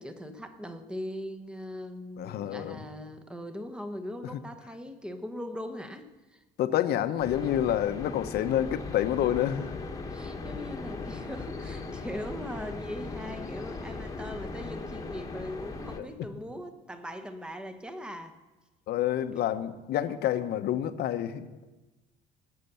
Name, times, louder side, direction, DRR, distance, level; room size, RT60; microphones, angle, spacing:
voice 1, 0.0-6.4 10.1-18.4, equal, 5° right, 7 dB, 1.1 m, -40 dB
voice 2, 2.2-2.9 4.3-4.4 6.6-9.8 15.9-16.1 18.9-21.5, left 11 dB, 70° left, 10 dB, 0.9 m, -28 dB
sound 1, 7.2-16.0, left 3 dB, 20° left, 1.4 m, -38 dB
18.0 x 6.8 x 6.9 m, 1.2 s
cardioid pair, 110°, 17 cm